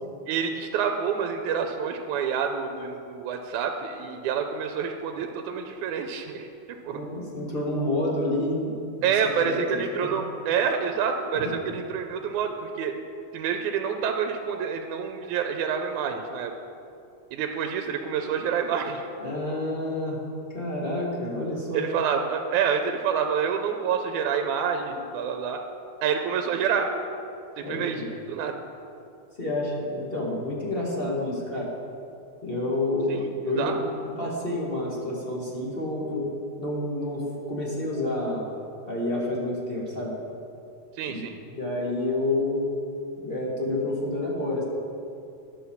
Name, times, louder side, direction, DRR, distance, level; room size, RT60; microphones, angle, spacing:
voice 1, 0.3-7.0 9.0-13.0 13.3-16.5 17.3-19.1 21.7-25.6 26.0-26.9 27.6-28.6 33.1-33.8 41.0-41.4, right 7 dB, 85° right, 5 dB, 2.0 m, -28 dB
voice 2, 6.9-9.1 9.4-9.6 10.0-10.1 19.2-20.2 20.5-21.8 27.6-28.1 29.4-31.7 32.4-36.3 36.6-38.4 38.8-40.1 41.1-41.2 41.6-42.7 43.1-44.6, left 1 dB, 25° left, -5 dB, 1.3 m, -29 dB
11.5 x 6.2 x 7.1 m, 2.6 s
omnidirectional pair, 3.5 m